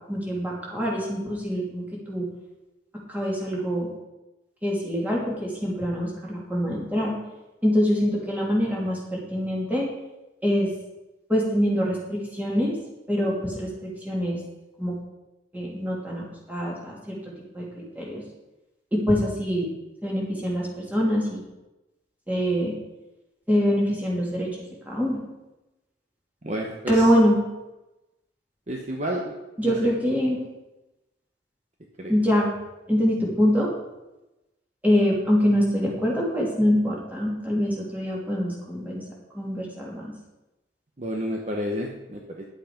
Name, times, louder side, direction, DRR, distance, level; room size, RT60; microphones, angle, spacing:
voice 1, 0.1-2.3 3.1-3.9 4.6-7.1 7.6-9.9 10.4-10.7 11.3-12.7 13.1-14.4 14.8-14.9 15.5-17.2 17.5-18.2 18.9-19.7 20.0-21.4 22.3-22.7 23.5-24.5 24.9-25.2 26.9-27.4 29.6-30.4 32.1-32.5 32.9-33.7 34.8-39.0 39.3-40.1, equal, 10° right, -4 dB, 2.9 m, -24 dB
voice 2, 26.4-27.1 28.7-29.3 29.6-29.8 32.0-32.1 41.0-42.5, equal, 40° right, 0 dB, 1.1 m, -30 dB
10.5 x 8.5 x 5.2 m, 1.0 s
head